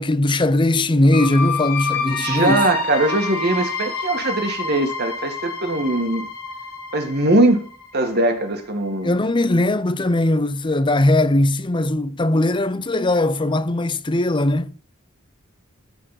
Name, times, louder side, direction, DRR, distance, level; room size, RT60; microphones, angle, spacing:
voice 1, 0.0-2.6 9.0-14.7, left 1 dB, 20° left, 0.6 m, -19 dB
sound 1, 1.1-8.7, left 3 dB, 85° left, 4.5 m, -28 dB
voice 2, 2.2-6.3 6.9-7.6 7.9-9.1, right 1 dB, 50° right, 2.0 m, -21 dB
13.5 x 4.6 x 5.8 m
head